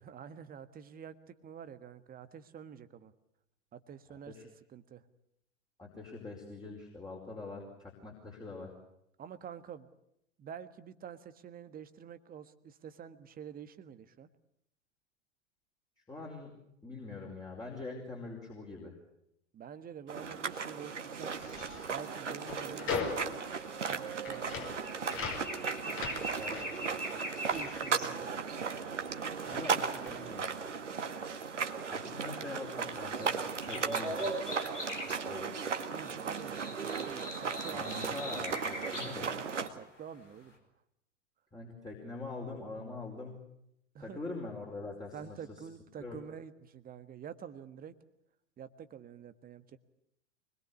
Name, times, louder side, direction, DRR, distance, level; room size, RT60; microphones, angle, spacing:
voice 1, 0.0-3.1 3.7-4.4 4.7-5.0 9.2-9.9 10.4-14.3 19.5-21.3 21.9-23.4 23.8-25.0 26.1-26.5 27.5-28.3 29.4-30.6 35.9-38.0 38.8-39.1 39.4-40.5 43.9-44.2 45.1-48.0 48.6-49.8, right 8 dB, 25° right, 12 dB, 1.6 m, -48 dB
voice 2, 4.1-4.5 5.8-8.7 16.1-19.0 26.3-27.0 29.5-29.8 30.1-30.5 31.9-33.3 33.6-34.3 35.3-35.6 37.7-39.3 41.5-43.4 44.0-45.4 46.0-46.2, left 3 dB, 10° left, -1 dB, 5.0 m, -43 dB
sound 1, 20.1-39.7, right 5 dB, 75° right, 1.9 m, -36 dB
sound 2, 21.2-28.7 29.0-30.5, left 5 dB, 35° left, 5.3 m, -41 dB
sound 3, 23.8-23.9 24.2-28.1 28.9-29.7 31.6-31.8 32.3-33.3 33.6-35.2 35.6-35.7 35.9-39.2 39.6-40.3 40.5-40.6, equal, 85° left, 4.8 m, -43 dB
25.0 x 21.5 x 8.3 m, 0.78 s
figure-of-eight pair, 90°, 36 cm